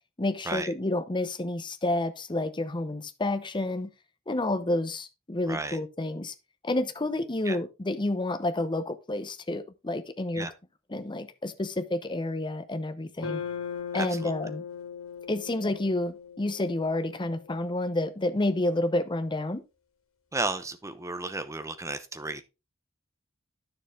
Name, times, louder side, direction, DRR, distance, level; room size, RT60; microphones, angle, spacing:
voice 1, 0.2-3.9 4.3-6.3 6.6-10.5 10.9-13.4 13.9-14.6 15.3-19.6, left 2 dB, 25° left, 0.7 m, -29 dB
voice 2, 5.5-5.8 7.4-7.6 10.4-10.5 13.9-14.3 20.3-22.4, right 2 dB, 15° right, 0.8 m, -33 dB
sound 1, 13.2-17.5, left 7 dB, 85° left, 2.1 m, -39 dB
9.9 x 6.8 x 3.3 m
head